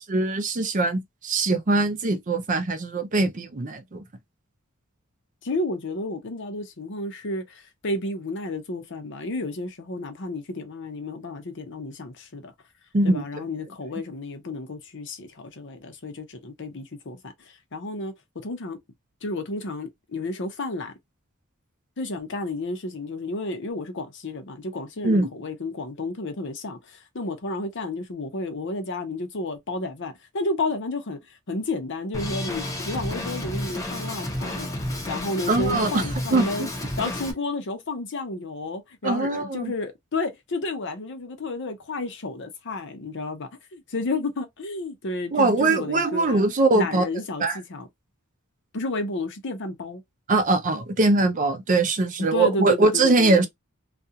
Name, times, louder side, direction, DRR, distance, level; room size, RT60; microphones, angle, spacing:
voice 1, 0.1-4.0 12.9-13.2 25.0-25.3 35.5-36.0 36.3-36.4 39.0-39.7 45.3-47.0 47.4-47.6 50.3-53.5, right 2 dB, 40° right, 0.5 m, -22 dB
voice 2, 5.4-12.5 13.0-17.3 17.7-18.1 18.4-18.8 19.2-20.9 22.0-31.2 31.5-34.7 35.1-36.7 37.0-46.4 46.7-47.9 48.7-50.0 52.2-53.5, left 2 dB, 60° left, 0.7 m, -31 dB
Drum kit, 32.1-37.3, left 1 dB, 15° left, 0.7 m, -31 dB
2.5 x 2.3 x 2.8 m
head